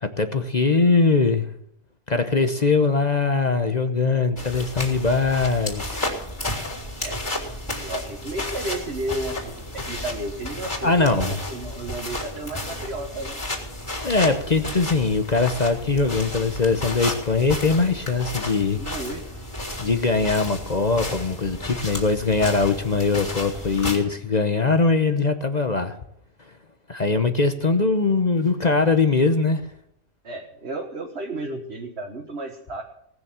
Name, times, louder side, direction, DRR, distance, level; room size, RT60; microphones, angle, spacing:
voice 1, 0.0-1.5 2.1-6.0 10.8-11.4 14.0-18.8 19.8-26.0 26.9-29.7, left 4 dB, 35° left, 8 dB, 0.8 m, -21 dB
sound 1, 4.4-24.0, left 1 dB, 20° left, 3.9 m, -32 dB
voice 2, 7.8-13.4 18.8-19.4 30.2-32.8, right 2 dB, 45° right, 1 dB, 1.6 m, -33 dB
18.5 x 6.9 x 7.5 m, 0.75 s
omnidirectional pair, 1.5 m